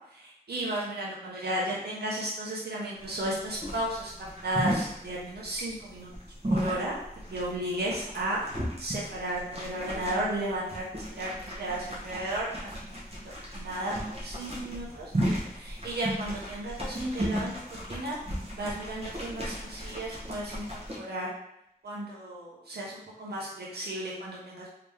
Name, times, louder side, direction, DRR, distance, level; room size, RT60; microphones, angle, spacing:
voice 1, 0.1-4.1 4.4-6.1 6.5-7.0 7.3-8.4 8.8-12.9 13.5-15.1 15.5-17.5 17.9-18.2 18.5-20.6 20.9-21.3 21.8-24.7, right 1 dB, 85° right, -5 dB, 0.8 m, -34 dB
sound 1, 3.0-21.0, equal, 40° right, 1.1 m, -35 dB
3.2 x 2.8 x 3.4 m, 0.78 s
wide cardioid pair, 65°, 16 cm